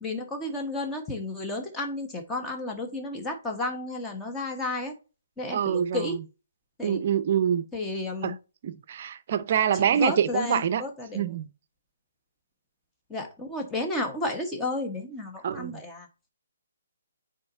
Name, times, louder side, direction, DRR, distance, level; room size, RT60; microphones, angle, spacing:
voice 1, 0.0-4.9 5.4-6.2 6.8-7.0 7.7-8.3 9.9-11.2 13.1-16.1, left 2 dB, 10° left, 1.3 m, -32 dB
voice 2, 5.5-6.2 6.8-7.6 8.2-8.4 8.6-10.8 11.1-11.5 15.4-15.8, right 8 dB, 40° right, 0.6 m, -26 dB
9.6 x 4.1 x 2.7 m
figure-of-eight pair, 140°, 0 cm